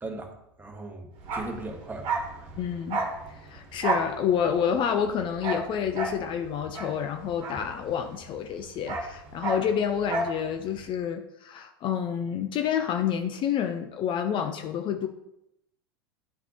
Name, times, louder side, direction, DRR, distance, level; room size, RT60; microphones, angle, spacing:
voice 1, 0.0-2.1 2.4-2.5, right 2 dB, 15° right, 2 dB, 1.4 m, -38 dB
Bark, 1.2-8.2 8.5-10.4 10.7-10.8, right 3 dB, 50° right, 1.5 m, -32 dB
voice 2, 2.6-3.0 3.3-15.1, left 8 dB, 40° left, 7 dB, 0.6 m, -28 dB
10.5 x 4.1 x 2.9 m, 0.82 s
hypercardioid pair, 85°, 13 cm